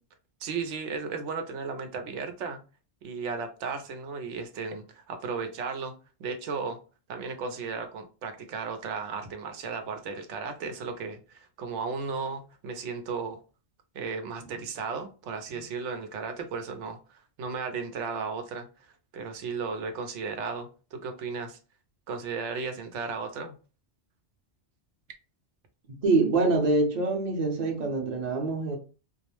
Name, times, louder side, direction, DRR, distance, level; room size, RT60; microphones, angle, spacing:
voice 1, 0.4-2.6 3.0-5.9 6.2-6.8 7.1-13.4 13.9-18.7 19.1-21.6 22.1-23.5, right 5 dB, 90° right, 0.9 m, -35 dB
voice 2, 26.0-28.8, right 3 dB, 45° right, 0.7 m, -25 dB
2.3 x 2.0 x 2.9 m
omnidirectional pair, 1.2 m